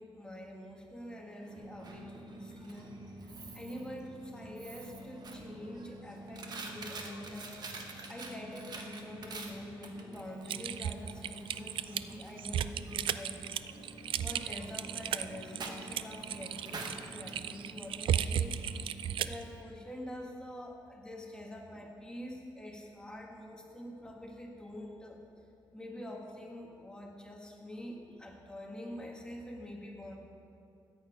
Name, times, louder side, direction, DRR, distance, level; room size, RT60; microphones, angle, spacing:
voice 1, 0.0-7.5 8.1-13.4 14.2-18.6 19.2-25.2 25.7-30.2, left 1 dB, 10° left, 0 dB, 1.5 m, -46 dB
Coin (dropping), 1.4-19.2, right 2 dB, 55° right, 1.3 m, -47 dB
Typing, 10.5-19.4, right 10 dB, 80° right, 0.4 m, -35 dB
13.5 x 8.7 x 5.1 m, 2.5 s
cardioid pair, 125°, 9 cm